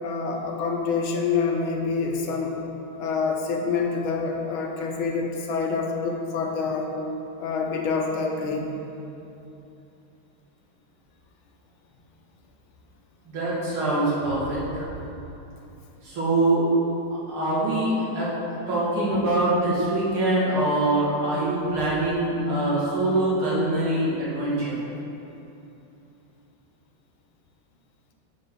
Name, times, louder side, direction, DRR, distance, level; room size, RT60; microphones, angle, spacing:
voice 1, 0.0-2.5 3.0-6.9 7.4-8.7, left 4 dB, 75° left, 1 dB, 1.6 m, -26 dB
voice 2, 13.3-14.9 16.0-16.6 17.3-18.3 18.7-24.8, right 2 dB, 75° right, -8 dB, 2.8 m, -24 dB
6.9 x 6.4 x 5.2 m, 2.9 s
omnidirectional pair, 2.4 m